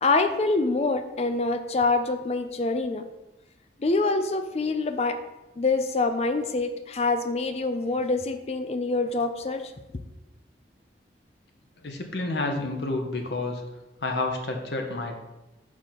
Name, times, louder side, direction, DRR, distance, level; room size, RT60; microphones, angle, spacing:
voice 1, 0.0-3.0 3.8-5.2 5.6-9.7, left 3 dB, 35° left, 9 dB, 0.4 m, -25 dB
voice 2, 11.8-13.6 14.0-15.2, left 2 dB, 75° left, 3 dB, 0.9 m, -29 dB
4.9 x 3.8 x 5.8 m, 1.0 s
head